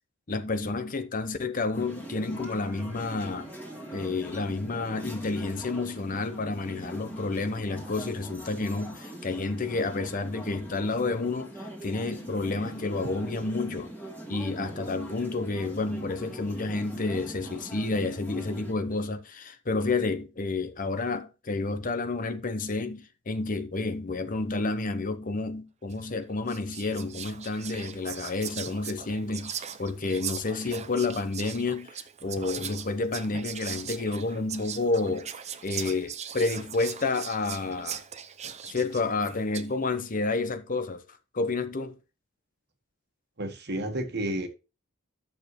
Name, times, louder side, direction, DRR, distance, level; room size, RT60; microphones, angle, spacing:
voice 1, 0.3-3.5 3.9-13.9 14.3-31.9 32.2-35.3 35.6-38.0 38.4-41.0 41.3-42.0, left 3 dB, 40° left, 0.9 m, -30 dB
sound 1, 1.7-18.7, right 1 dB, 10° left, 2.1 m, -42 dB
Whispering, 25.9-26.1 26.5-39.8, right 8 dB, 30° right, 0.6 m, -40 dB
voice 2, 43.4-44.5, right 1 dB, 50° right, 1.5 m, -31 dB
12.5 x 6.8 x 3.1 m
head